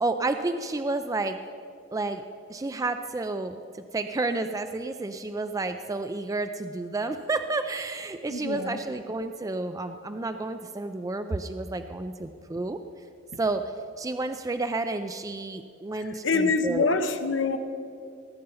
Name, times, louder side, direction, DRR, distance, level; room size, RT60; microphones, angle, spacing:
voice 1, 0.0-1.4 1.9-2.2 2.5-12.8 13.4-13.6 14.0-16.9, right 2 dB, 20° right, 8 dB, 0.4 m, -30 dB
voice 2, 8.3-8.8 16.2-17.6, left 4 dB, 70° left, 8 dB, 0.9 m, -25 dB
18.0 x 7.8 x 5.5 m, 2.4 s
head